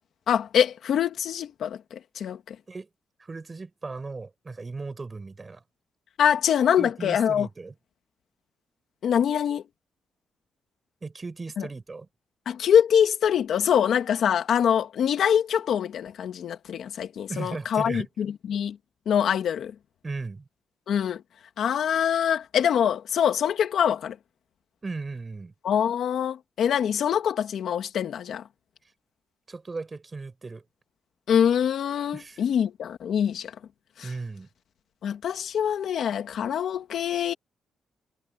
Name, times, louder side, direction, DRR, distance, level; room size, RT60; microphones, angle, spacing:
voice 1, 0.3-2.6 6.2-7.5 9.0-9.6 11.6-11.7 12.5-18.8 19.1-19.7 20.9-21.2 21.6-24.2 25.6-28.4 31.3-33.5 34.0-34.1 35.0-37.3, left 8 dB, 60° left, 2.2 m, -24 dB
voice 2, 3.2-5.6 6.8-7.7 11.0-12.1 17.3-18.1 20.0-20.5 24.8-25.5 29.5-30.6 32.1-32.4 34.0-34.5, right 3 dB, 20° right, 7.6 m, -36 dB
cardioid pair, 165°, 0 cm